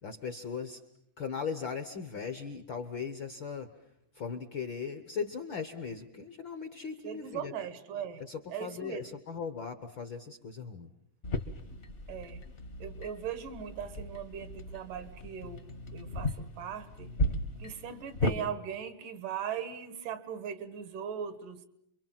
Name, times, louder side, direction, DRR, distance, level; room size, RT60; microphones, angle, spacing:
voice 1, 0.0-0.8 1.2-3.7 4.1-7.5 8.2-10.9, left 6 dB, 60° left, 8 dB, 1.3 m, -38 dB
voice 2, 7.0-8.2 8.5-9.1 12.1-12.4 12.8-17.1 17.6-21.6, right 8 dB, 85° right, 12 dB, 3.1 m, -39 dB
sound 1, 11.2-18.4, left 1 dB, 40° left, 0.9 m, -36 dB
28.0 x 24.0 x 7.4 m, 0.74 s
omnidirectional pair, 3.6 m